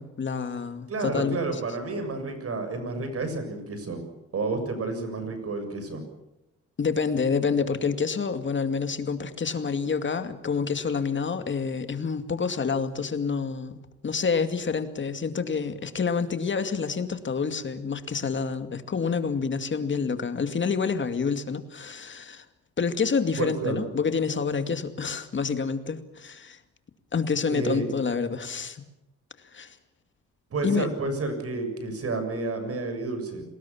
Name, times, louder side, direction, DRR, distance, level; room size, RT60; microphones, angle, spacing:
voice 1, 0.0-1.6 6.8-22.4 22.8-26.6 27.1-28.8 29.5-29.8 30.6-30.9, left 5 dB, 40° left, 9 dB, 2.4 m, -28 dB
voice 2, 0.9-4.0 4.3-6.0 23.4-23.8 27.5-27.9 30.5-33.4, right 3 dB, 50° right, 7 dB, 7.1 m, -30 dB
28.5 x 20.0 x 7.3 m, 0.92 s
cardioid pair, 90°, 30 cm